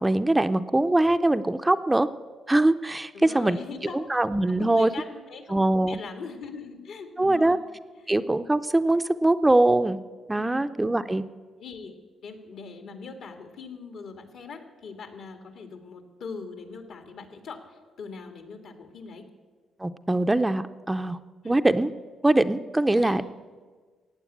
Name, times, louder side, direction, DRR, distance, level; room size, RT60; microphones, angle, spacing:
voice 1, 0.0-2.1 2.5-3.6 3.9-4.9 5.5-6.0 7.2-7.6 8.1-10.0 10.3-11.2 19.8-21.2 21.4-21.9 22.2-23.2, right 2 dB, 15° right, 10 dB, 0.5 m, -22 dB
voice 2, 3.1-4.0 4.5-7.6 8.0-8.1 10.4-10.6 11.6-11.9 12.2-19.3 21.4-21.6 22.9-23.3, left 5 dB, 70° left, 5 dB, 2.0 m, -41 dB
15.5 x 9.0 x 8.5 m, 1.5 s
cardioid pair, 95°, 0 cm